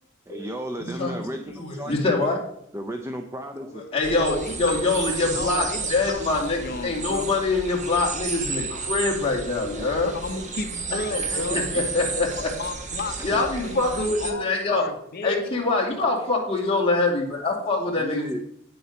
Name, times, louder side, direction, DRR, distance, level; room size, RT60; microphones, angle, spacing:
voice 1, 0.3-2.0 2.7-3.8 11.3-11.9 13.2-13.4 18.0-18.4, equal, 15° right, 5 dB, 0.6 m, -34 dB
voice 2, 0.8-1.2 1.5-2.4 3.7-10.1 10.9-12.5 13.2-14.8 15.2-18.4, left 3 dB, 30° left, -2 dB, 2.2 m, -25 dB
sound 1, 4.0-14.3, right 4 dB, 40° right, 1.2 m, -32 dB
voice 3, 4.1-4.8 5.3-7.3 10.0-11.7 12.5-15.4, left 3 dB, 50° left, 8 dB, 0.8 m, -33 dB
9.2 x 6.9 x 5.2 m, 0.74 s
head